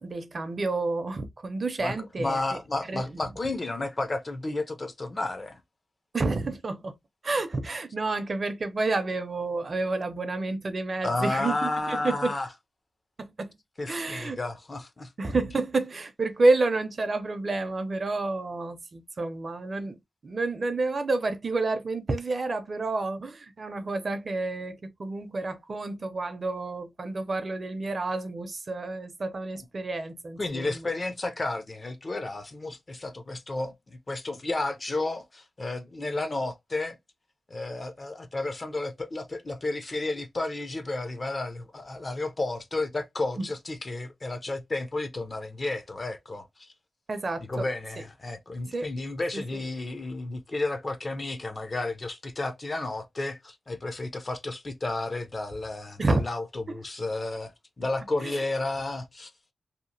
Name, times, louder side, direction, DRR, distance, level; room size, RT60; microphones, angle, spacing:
voice 1, 0.0-2.4 2.9-3.3 6.1-7.0 7.2-12.3 13.2-13.5 13.9-14.4 15.2-20.0 20.2-30.8 43.4-43.5 47.1-47.6 48.7-48.9 49.3-49.4 56.0-56.3 56.7-56.8 58.2-58.4, right 3 dB, 40° right, 0.5 m, -29 dB
voice 2, 1.8-5.6 11.0-12.5 13.8-15.1 30.4-37.0 37.5-46.7 47.5-57.5 57.8-59.3, left 2 dB, 30° left, 0.5 m, -32 dB
2.8 x 2.4 x 2.6 m
wide cardioid pair, 125°, 0 cm